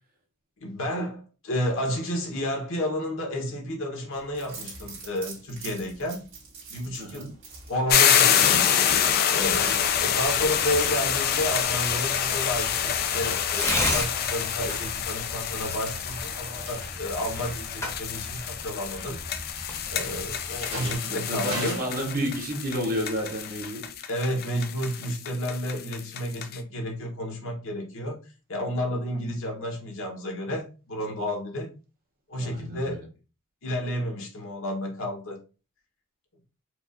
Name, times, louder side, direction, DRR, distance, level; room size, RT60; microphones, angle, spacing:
voice 1, 0.6-6.3 6.7-7.3 7.7-8.7 9.3-19.2 19.9-21.8 24.1-28.2 28.5-31.7 32.3-33.0 33.6-35.4, equal, 60° left, 1.1 m, -31 dB
sound 1, 4.1-24.0, right 3 dB, 60° right, 1.9 m, -46 dB
voice 2, 7.0-7.3 20.6-23.9 32.4-33.1, equal, 40° right, 0.8 m, -31 dB
sound 2, 7.9-26.6, left 9 dB, 45° left, 0.3 m, -27 dB
Tearing, 9.4-21.0, left 1 dB, 15° left, 0.8 m, -36 dB
4.6 x 2.4 x 2.5 m
head